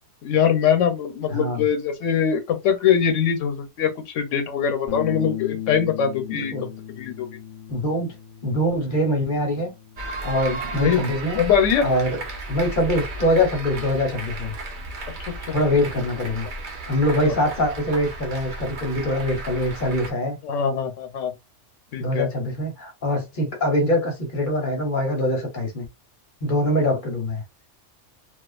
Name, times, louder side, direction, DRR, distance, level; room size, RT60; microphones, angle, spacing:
voice 1, 0.2-6.5 7.0-7.3 10.8-11.0 11.4-11.8 15.3-15.5 20.4-21.3 21.9-22.3, left 8 dB, 90° left, 1.0 m, -22 dB
voice 2, 1.3-1.6 6.3-6.7 7.7-8.1 8.4-9.7 10.2-11.4 11.8-12.2 12.5-14.5 15.5-16.5 16.9-20.4 22.0-25.9 26.4-27.4, left 1 dB, 45° left, 0.9 m, -23 dB
Bass guitar, 4.9-11.1, left 11 dB, 70° left, 0.4 m, -37 dB
sound 1, 10.0-20.1, right 2 dB, 50° right, 0.7 m, -34 dB
2.4 x 2.4 x 2.3 m
omnidirectional pair, 1.3 m